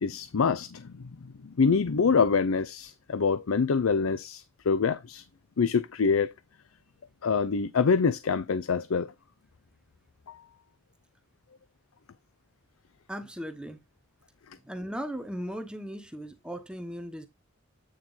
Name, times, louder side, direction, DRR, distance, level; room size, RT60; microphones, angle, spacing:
voice 1, 0.0-5.2 5.6-6.3 7.2-9.1 10.3-10.4, left 5 dB, 85° left, 0.6 m, -26 dB
voice 2, 13.1-13.8 14.6-17.3, equal, 5° right, 1.0 m, -37 dB
9.0 x 4.4 x 4.0 m
head